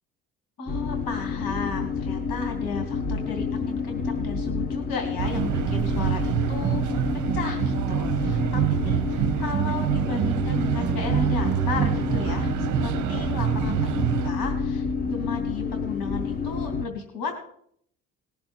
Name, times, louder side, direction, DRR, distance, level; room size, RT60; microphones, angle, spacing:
voice 1, 0.6-7.0 7.3-17.4, left 5 dB, 60° left, 4 dB, 2.8 m, -34 dB
sound 1, 0.7-16.9, left 4 dB, 20° left, 1.1 m, -29 dB
sound 2, 5.2-14.3, right 12 dB, 45° right, 0.7 m, -26 dB
19.5 x 7.0 x 4.4 m, 0.65 s
figure-of-eight pair, 50°, 40 cm